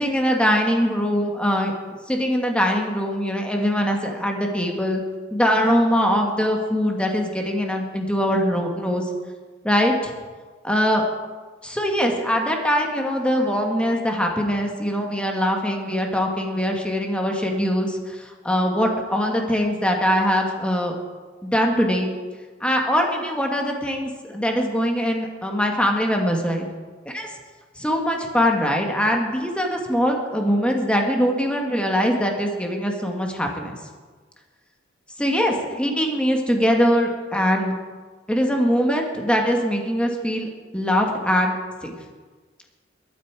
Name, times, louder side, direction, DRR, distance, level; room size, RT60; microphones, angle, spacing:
voice 1, 0.0-1.7 2.1-5.0 5.3-9.0 9.6-10.1 10.6-11.0 11.6-20.9 21.4-22.1 22.6-26.7 27.0-27.3 27.8-33.8 35.2-37.7 38.3-42.0, equal, 5° left, 2 dB, 1.6 m, -22 dB
22.5 x 9.3 x 4.7 m, 1.4 s
head